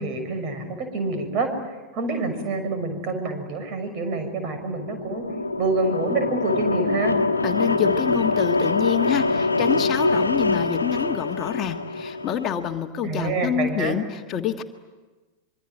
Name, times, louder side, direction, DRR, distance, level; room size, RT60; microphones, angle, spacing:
voice 1, 0.0-1.5 1.9-5.2 5.6-7.2 13.0-14.0, right 3 dB, 40° right, 7 dB, 6.3 m, -27 dB
sound 1, 4.7-12.6, left 3 dB, 80° left, 1.3 m, -24 dB
voice 2, 7.4-14.6, left 9 dB, 30° left, 5 dB, 1.6 m, -27 dB
25.5 x 24.5 x 9.4 m, 1.2 s
figure-of-eight pair, 90°, 0 cm